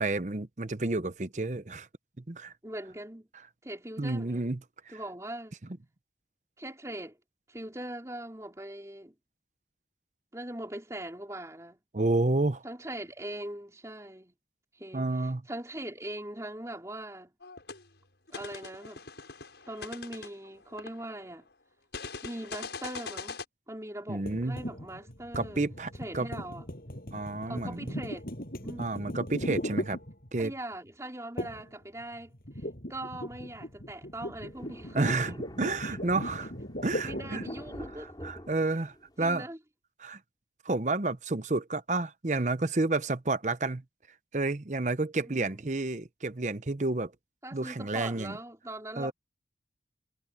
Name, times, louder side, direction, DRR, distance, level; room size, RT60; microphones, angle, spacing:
voice 1, 0.0-1.9 2.3-2.5 4.0-4.6 11.9-12.6 14.9-15.4 24.1-24.6 25.3-26.3 27.1-28.0 28.8-30.0 30.3-30.5 34.9-36.5 36.8-37.4 38.2-39.5 40.0-40.2 40.6-43.8 44.3-47.1 47.5-48.4 49.0-49.1, right 2 dB, 40° right, 0.8 m, -30 dB
voice 2, 2.6-3.3 3.6-4.5 4.9-5.6 6.6-7.2 7.5-9.1 10.3-11.8 12.6-14.3 14.7-17.3 18.3-19.0 19.7-21.5 22.2-23.4 23.7-25.6 26.0-26.7 27.5-28.3 28.6-28.9 30.4-32.3 32.9-35.4 37.0-38.1 39.2-39.6 45.3-45.6 47.4-49.1, right 1 dB, 15° right, 4.1 m, -41 dB
sound 1, 17.4-17.8 18.3-21.3 21.9-23.5, left 4 dB, 80° left, 6.3 m, -42 dB
sound 2, 24.3-30.6 31.4-31.7 32.0-37.7, equal, 55° left, 7.0 m, -38 dB
Thunder, 34.5-39.3, equal, 25° left, 6.3 m, -47 dB
head